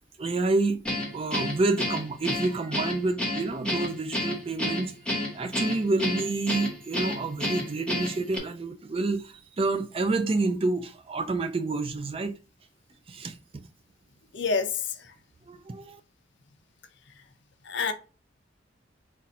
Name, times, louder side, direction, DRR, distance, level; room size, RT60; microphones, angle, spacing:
voice 1, 0.2-4.9 5.3-12.4 13.1-13.4 15.5-16.0, right 3 dB, 30° right, 0.4 m, -28 dB
Guitar, 0.8-8.4, left 1 dB, 5° left, 1.1 m, -30 dB
voice 2, 14.3-14.7 17.7-17.9, left 4 dB, 65° left, 0.7 m, -26 dB
4.0 x 2.5 x 4.1 m
head